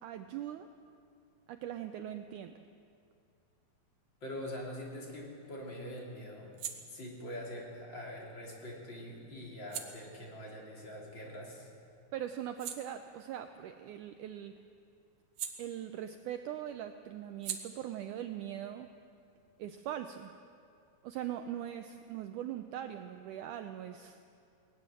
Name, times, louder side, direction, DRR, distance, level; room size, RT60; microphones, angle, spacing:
voice 1, 0.0-0.7 1.5-2.6 12.1-14.6 15.6-18.9 19.6-20.3 21.0-24.2, right 11 dB, 90° right, 7 dB, 1.7 m, -41 dB
voice 2, 4.2-6.5 6.9-11.7, left 1 dB, 30° left, -2 dB, 3.5 m, -44 dB
sound 1, 4.8-11.7 12.1-16.3 16.6-20.0, right 9 dB, 65° right, 2.5 m, -48 dB
19.5 x 18.5 x 7.6 m, 2.4 s
omnidirectional pair, 4.4 m